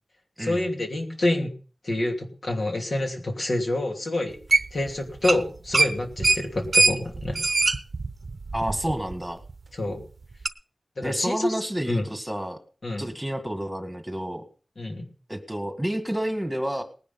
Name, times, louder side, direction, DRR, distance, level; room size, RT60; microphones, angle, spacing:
voice 1, 0.4-1.5 1.8-4.4 4.7-7.4 9.8-10.0 11.0-11.5 11.9-12.1 12.8-13.1 14.8-15.0, left 1 dB, 65° left, 2 dB, 2.9 m, -27 dB
sound 1, 4.5-4.9 5.2-5.4 5.7-9.1 9.5-9.6 10.5-10.6, right 3 dB, 60° right, 0.7 m, -22 dB
voice 2, 8.5-9.4 11.0-12.6 13.0-14.4 15.3-16.8, right 1 dB, 5° right, 6 dB, 1.8 m, -29 dB
19.0 x 10.0 x 4.1 m, 0.38 s
wide cardioid pair, 85°, 0 cm